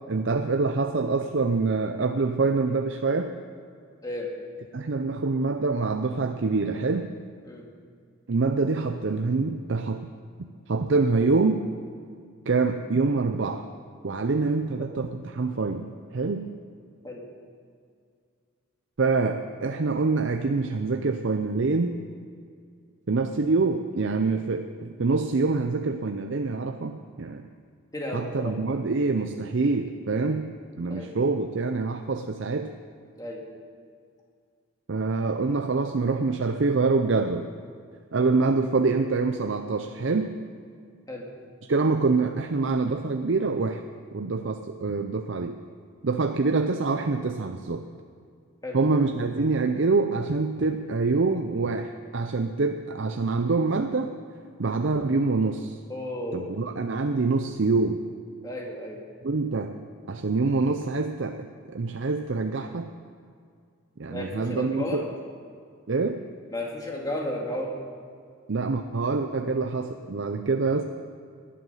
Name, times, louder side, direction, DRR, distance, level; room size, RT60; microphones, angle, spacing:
voice 1, 0.1-3.3 4.7-7.1 8.3-10.1 10.7-11.6 12.5-13.7 14.0-16.5 19.0-22.0 23.1-27.4 28.1-32.7 34.9-37.5 38.1-40.3 41.7-43.8 44.1-45.6 46.0-47.8 48.7-54.1 54.6-55.8 56.3-58.0 59.2-59.8 60.1-62.9 64.0-65.0 65.9-66.3 68.5-70.8, right 3 dB, 60° right, 6 dB, 0.6 m, -25 dB
voice 2, 27.9-28.5 30.3-30.4 30.9-31.1 33.2-33.4 41.1-41.3 48.6-48.8 55.9-56.5 58.4-59.0 64.1-65.0 66.5-67.7, left 1 dB, 15° left, -1 dB, 2.2 m, -33 dB
18.5 x 11.0 x 5.6 m, 2.2 s
head